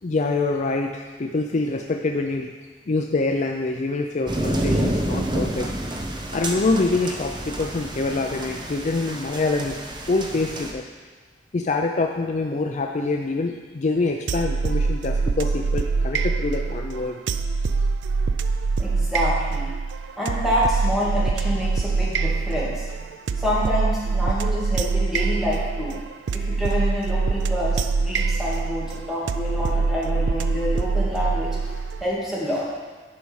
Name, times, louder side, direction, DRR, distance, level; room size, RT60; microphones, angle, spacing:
voice 1, 0.0-2.5 2.9-5.7 6.3-9.8 10.1-10.8 11.5-17.2, left 3 dB, 40° left, 3 dB, 0.5 m, -25 dB
sound 1, 4.3-10.7, right 1 dB, 25° right, 0.8 m, -29 dB
sound 2, 14.3-32.0, right 4 dB, 85° right, 0.4 m, -24 dB
voice 2, 18.8-19.7 20.2-22.9 23.3-26.0 26.3-32.7, left 1 dB, ahead, -7 dB, 2.3 m, -27 dB
10.5 x 5.5 x 4.7 m, 1.5 s
head